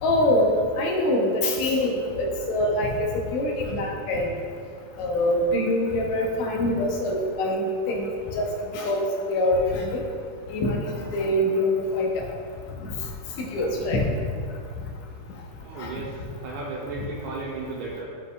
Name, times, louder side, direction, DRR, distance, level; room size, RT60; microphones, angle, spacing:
voice 1, 0.0-4.3 5.0-8.1 8.3-10.0 10.5-12.2 13.4-14.0 15.8-15.9, left 1 dB, 80° left, -1 dB, 2.2 m, -24 dB
voice 2, 15.6-18.0, right 3 dB, 90° right, -5 dB, 2.1 m, -34 dB
10.5 x 4.8 x 2.3 m, 2.2 s
omnidirectional pair, 3.3 m